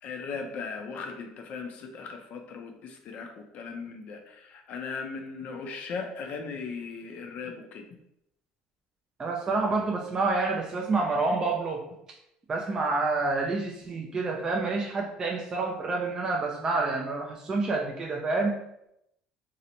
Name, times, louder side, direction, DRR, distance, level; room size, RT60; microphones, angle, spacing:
voice 1, 0.0-7.8, left 5 dB, 55° left, 4 dB, 0.4 m, -38 dB
voice 2, 9.2-11.8 12.5-18.6, right 3 dB, 25° right, 0 dB, 0.4 m, -28 dB
2.8 x 2.0 x 2.6 m, 0.79 s
cardioid pair, 120°, 3 cm